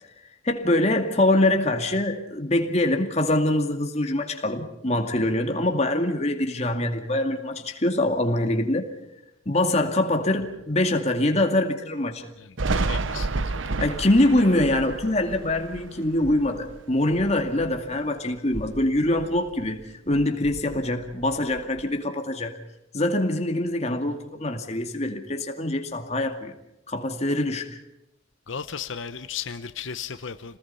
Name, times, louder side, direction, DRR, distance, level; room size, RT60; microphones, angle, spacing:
voice 1, 0.4-8.9 9.5-12.3 13.8-22.6 22.9-26.5 26.9-27.8, left 1 dB, 35° left, 2.3 m, -24 dB
voice 2, 12.4-13.8 28.5-30.6, left 7 dB, 85° left, 0.9 m, -36 dB
Thunder, 12.6-18.0 18.4-19.8 20.1-21.8, right 3 dB, 90° right, 0.8 m, -32 dB
27.5 x 19.5 x 5.6 m
head